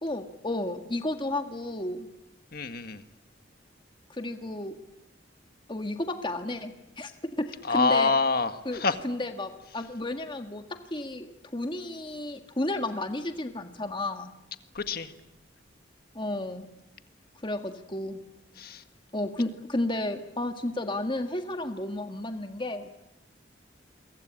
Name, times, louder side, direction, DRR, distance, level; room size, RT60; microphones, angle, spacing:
voice 1, 0.0-2.1 4.1-4.8 5.7-7.1 7.4-8.1 8.6-10.6 10.9-14.3 16.1-16.7 17.4-18.2 19.1-22.9, left 1 dB, 25° left, 6 dB, 1.7 m, -32 dB
voice 2, 2.5-3.0 7.7-9.0 14.7-15.1 18.6-18.8, left 4 dB, 55° left, 9 dB, 1.7 m, -26 dB
28.5 x 23.5 x 8.9 m, 0.89 s
head